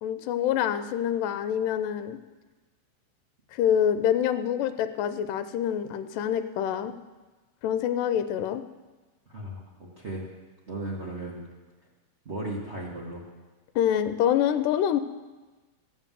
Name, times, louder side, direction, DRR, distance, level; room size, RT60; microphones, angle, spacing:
voice 1, 0.0-2.2 3.5-6.9 7.6-8.6 13.8-15.0, left 9 dB, 80° left, 10 dB, 2.2 m, -26 dB
voice 2, 9.3-10.3 10.7-11.4 12.2-13.3, right 1 dB, 60° right, -4 dB, 0.6 m, -36 dB
14.5 x 7.2 x 7.5 m, 1.2 s
omnidirectional pair, 4.0 m